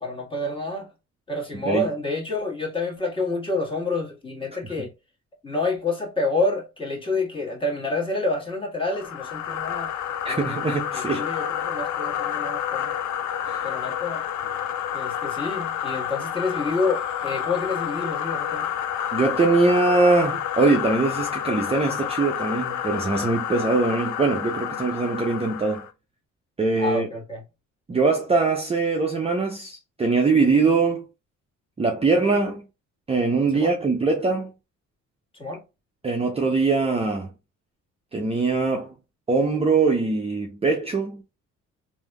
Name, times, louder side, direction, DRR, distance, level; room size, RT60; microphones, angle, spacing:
voice 1, 0.0-0.9 1.3-4.9 5.4-9.9 10.3-12.9 13.6-14.2 14.9-18.7 26.8-27.4 33.5-33.7 35.3-35.6, left 2 dB, 15° left, 1.4 m, -28 dB
sound 1, 8.9-25.9, left 9 dB, 75° left, 0.5 m, -29 dB
voice 2, 10.2-11.3 13.4-13.7 19.1-25.8 26.6-27.1 27.9-31.0 31.8-32.6 33.1-34.5 36.0-37.3 38.1-38.9 39.3-41.2, right 3 dB, 20° right, 0.5 m, -22 dB
3.3 x 2.6 x 2.2 m
cardioid pair, 90°, 30 cm